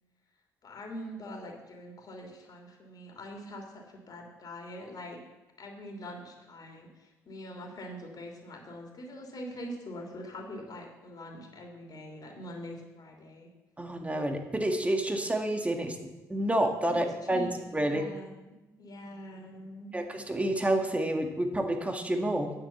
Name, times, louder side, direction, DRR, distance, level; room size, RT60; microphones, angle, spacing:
voice 1, 0.6-5.2 5.6-13.5 16.8-20.0, equal, 45° left, 2 dB, 3.0 m, -44 dB
voice 2, 13.8-18.1 19.9-22.5, right 1 dB, 15° right, 4 dB, 1.9 m, -29 dB
9.9 x 7.6 x 7.2 m, 1.1 s
hypercardioid pair, 55°, 9 cm